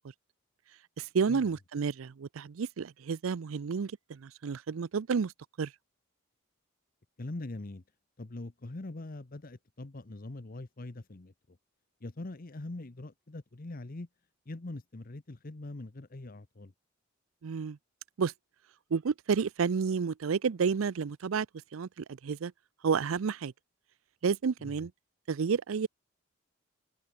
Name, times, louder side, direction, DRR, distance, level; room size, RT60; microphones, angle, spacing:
voice 1, 1.0-5.3 5.6-5.7 17.4-17.8 18.2-18.3 18.9-21.5 21.7-22.5 22.8-23.5 24.2-24.9 25.3-25.9, right 5 dB, 75° right, 0.5 m, -30 dB
voice 2, 7.2-7.8 8.2-11.6 12.0-14.1 14.5-16.7 24.6-24.9, left 2 dB, 45° left, 0.9 m, -42 dB
open air
head